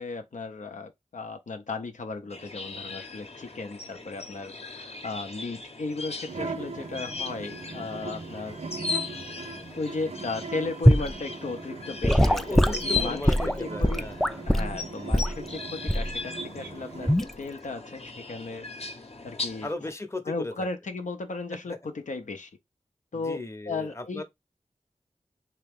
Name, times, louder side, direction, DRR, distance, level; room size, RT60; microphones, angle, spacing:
voice 1, 0.0-8.6 9.8-14.0 14.4-18.0 18.3-18.6 19.2-19.7 20.3-22.5 23.1-24.2, left 3 dB, 85° left, 0.6 m, -35 dB
sound 1, 2.3-19.7, left 4 dB, 55° left, 0.9 m, -38 dB
sound 2, 6.3-17.2, right 4 dB, 60° right, 0.6 m, -40 dB
Gurgling / Sink (filling or washing) / Liquid, 10.9-11.1 12.0-14.7 15.1-15.4 15.9-16.2 17.1-17.3, equal, ahead, 0.3 m, -21 dB
voice 2, 12.5-14.4 19.6-20.7 21.7-21.8 23.1-24.2, left 2 dB, 20° left, 0.7 m, -36 dB
3.3 x 2.9 x 3.4 m
wide cardioid pair, 55°, 12 cm